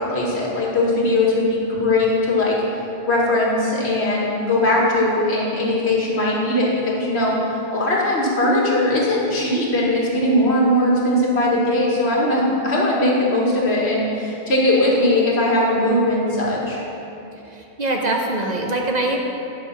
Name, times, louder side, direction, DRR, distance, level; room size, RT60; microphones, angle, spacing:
voice 1, 0.0-2.6 3.1-16.8, left 1 dB, 75° left, -4 dB, 1.9 m, -19 dB
voice 2, 17.5-19.2, right 2 dB, 45° right, 1 dB, 0.8 m, -23 dB
10.0 x 5.4 x 5.8 m, 2.8 s
omnidirectional pair, 1.1 m